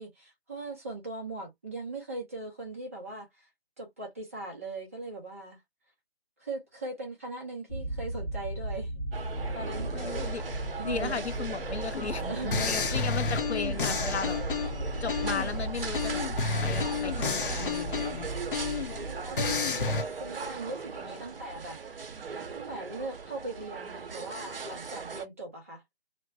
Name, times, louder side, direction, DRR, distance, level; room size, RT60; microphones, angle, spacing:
voice 1, 0.0-3.5 3.8-5.6 6.4-9.0 9.5-9.9 10.4-11.2 11.8-13.1 18.9-21.8 22.5-25.8, right 2 dB, 15° right, 0.6 m, -40 dB
sound 1, 7.7-20.7, right 1 dB, 20° left, 0.7 m, -36 dB
sound 2, 9.1-25.3, right 5 dB, 60° right, 0.7 m, -39 dB
voice 2, 9.9-10.4 10.8-14.4 15.0-16.2 16.6-18.3, left 5 dB, 90° left, 0.6 m, -35 dB
sound 3, 11.9-12.1 12.5-15.5 15.9-19.0 19.4-20.0, left 5 dB, 55° left, 0.7 m, -31 dB
2.9 x 2.1 x 2.7 m
figure-of-eight pair, 155°, 32 cm